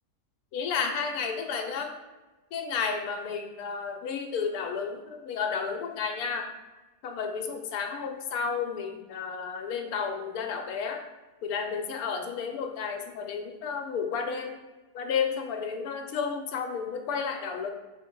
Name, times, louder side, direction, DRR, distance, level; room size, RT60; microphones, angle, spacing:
voice 1, 0.5-2.0 2.5-6.5 7.0-11.1 11.4-14.6 14.9-17.7, left 6 dB, 75° left, 4 dB, 1.0 m, -32 dB
4.7 x 2.1 x 4.3 m, 1.1 s
omnidirectional pair, 1.7 m